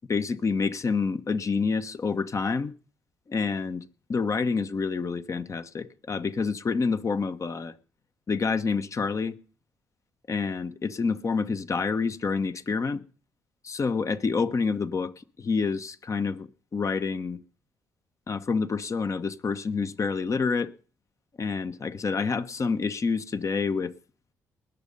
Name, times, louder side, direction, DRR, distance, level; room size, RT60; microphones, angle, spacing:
voice 1, 0.1-2.7 3.3-3.8 4.1-7.7 8.3-9.4 10.3-13.0 13.6-15.1 15.4-17.4 18.3-20.7 21.4-23.9, left 4 dB, 40° left, 1.1 m, -28 dB
20.0 x 7.3 x 5.4 m
hypercardioid pair, 50°, 8 cm